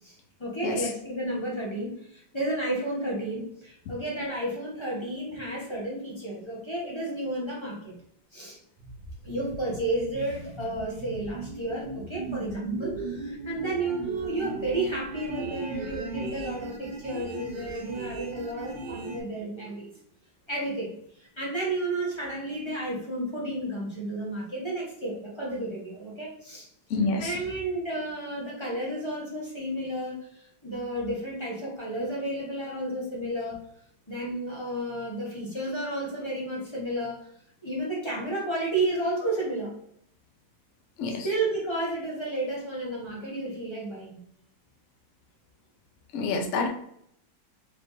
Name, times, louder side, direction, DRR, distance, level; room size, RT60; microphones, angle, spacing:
voice 1, 0.0-7.9 8.3-8.6 9.2-19.9 20.5-20.9 21.2-26.7 27.2-33.6 34.1-37.3 37.6-39.7 41.1-44.2 46.6-46.7, right 1 dB, 20° left, -5 dB, 0.9 m, -32 dB
sound 1, 8.8-19.2, right 3 dB, 85° right, 0.4 m, -37 dB
voice 2, 26.9-27.3 41.0-41.2 46.1-46.7, left 3 dB, 70° left, 3 dB, 0.7 m, -27 dB
4.4 x 3.3 x 2.6 m, 0.72 s
omnidirectional pair, 2.0 m